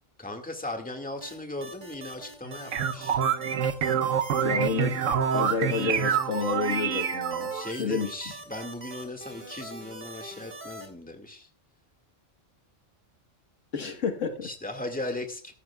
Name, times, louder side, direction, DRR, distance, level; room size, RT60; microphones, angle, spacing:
voice 1, 0.2-3.2 7.5-11.5 14.4-15.5, left 2 dB, 5° left, 4 dB, 2.0 m, -37 dB
sound 1, 1.2-10.9, right 1 dB, 35° right, 3.6 m, -43 dB
sound 2, 2.4-7.7, right 8 dB, 75° right, 1.2 m, -27 dB
voice 2, 4.4-5.0 5.3-8.3 13.7-14.5, left 5 dB, 70° left, 6 dB, 1.7 m, -30 dB
15.5 x 13.5 x 2.3 m, 0.39 s
omnidirectional pair, 1.3 m